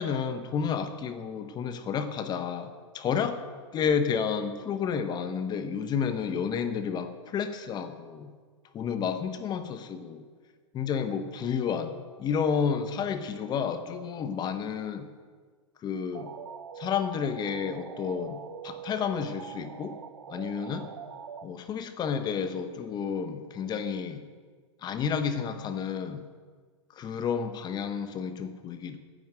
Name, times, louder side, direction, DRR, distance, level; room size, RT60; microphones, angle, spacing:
voice 1, 0.0-3.4 3.7-8.3 8.7-10.2 10.7-15.1 15.8-16.3 16.8-20.0 20.3-20.9 21.4-24.2 24.8-26.2 26.9-29.0, left 6 dB, 25° left, 9 dB, 1.1 m, -31 dB
sound 1, 16.1-21.5, right 8 dB, 80° right, 0.7 m, -43 dB
10.5 x 9.3 x 7.7 m, 1.5 s
hypercardioid pair, 110°, 16 cm